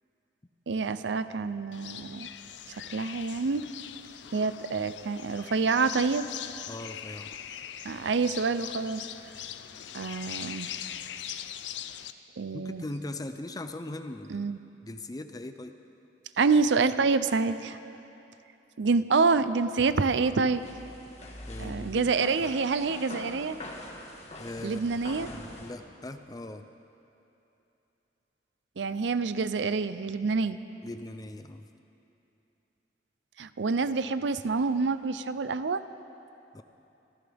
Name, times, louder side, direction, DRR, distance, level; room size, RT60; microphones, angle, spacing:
voice 1, 0.7-2.3 2.7-3.7 4.3-6.3 7.8-9.0 9.9-10.7 12.4-12.8 14.3-14.6 16.4-17.8 18.8-20.6 21.6-23.6 24.6-25.3 28.8-30.6 33.4-35.8, right 4 dB, 80° right, 13 dB, 0.5 m, -27 dB
sound 1, 1.7-12.1, left 10 dB, 80° left, 0.5 m, -41 dB
voice 2, 6.7-7.3 12.5-14.5 14.8-15.7 21.5-22.1 24.4-24.9 25.2-26.6 30.8-31.6 36.5-36.6, left 1 dB, 20° left, 8 dB, 0.5 m, -40 dB
sound 2, 20.0-25.7, left 1 dB, 40° left, 1.5 m, -44 dB
24.0 x 14.0 x 3.5 m, 2.9 s
head